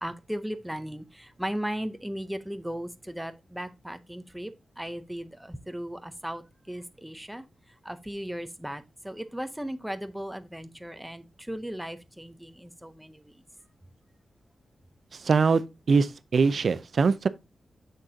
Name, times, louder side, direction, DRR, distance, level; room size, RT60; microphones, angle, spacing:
voice 1, 0.0-4.5 4.8-7.4 7.8-13.3, equal, 5° right, 0.5 m, -36 dB
voice 2, 15.2-15.6 15.9-17.3, right 5 dB, 50° right, 0.5 m, -22 dB
6.7 x 6.1 x 2.7 m
wide cardioid pair, 175°, 0 cm